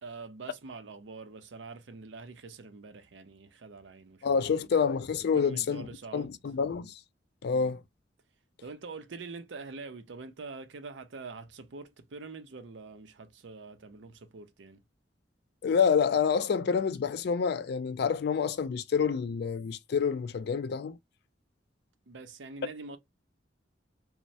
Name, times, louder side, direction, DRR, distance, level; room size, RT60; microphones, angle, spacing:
voice 1, 0.0-4.7 5.3-6.4 7.5-7.7 8.6-14.8 22.1-23.0, right 4 dB, 85° right, 0.6 m, -45 dB
voice 2, 4.2-5.9 6.1-6.9 7.4-7.8 15.6-21.0, left 6 dB, 60° left, 0.3 m, -28 dB
3.1 x 2.1 x 2.6 m
head